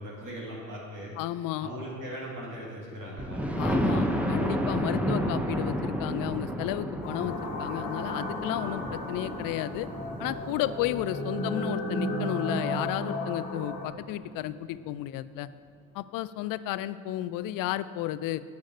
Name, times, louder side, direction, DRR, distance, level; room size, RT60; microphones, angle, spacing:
voice 1, 0.0-1.1 1.6-3.9, equal, 50° right, -5 dB, 2.2 m, -39 dB
voice 2, 1.2-1.7 3.6-9.9 10.2-15.5 15.9-18.4, left 14 dB, 55° left, 15 dB, 0.5 m, -33 dB
Thunder, 3.2-12.9 13.5-13.6 14.0-14.1 14.3-14.4, equal, 5° right, 0.9 m, -32 dB
sound 1, 7.0-13.8, left 1 dB, 85° left, 1.3 m, -34 dB
8.3 x 6.3 x 5.3 m, 2.1 s
hypercardioid pair, 65°, 40 cm